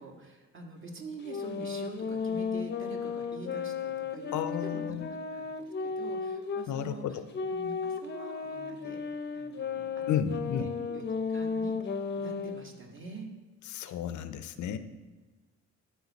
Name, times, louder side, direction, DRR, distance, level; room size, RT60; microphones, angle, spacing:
voice 1, 0.0-5.4 5.8-9.0 9.3-13.3, right 3 dB, 40° right, 1 dB, 1.7 m, -45 dB
sound 1, 1.2-6.7 7.3-12.7, left 5 dB, 35° left, 0.7 m, -34 dB
voice 2, 4.3-5.1 6.7-7.1 10.1-10.7 13.7-14.8, left 9 dB, 75° left, 11 dB, 0.6 m, -32 dB
12.5 x 4.6 x 4.1 m, 1.3 s
cardioid pair, 90°, 30 cm